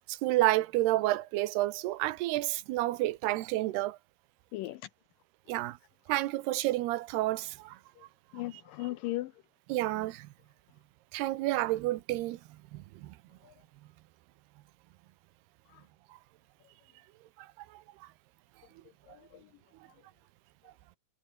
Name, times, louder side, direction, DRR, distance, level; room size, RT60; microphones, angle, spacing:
voice 1, 0.1-4.0 5.5-5.8 6.1-7.8 9.7-10.3 11.1-12.4 12.7-13.1 17.4-17.5 17.7-17.8, right 17 dB, 85° right, 3.0 m, -30 dB
voice 2, 8.3-9.3 13.4-13.5 15.7-15.8 19.1-19.5, left 17 dB, 80° left, 2.0 m, -37 dB
omnidirectional pair, 4.6 m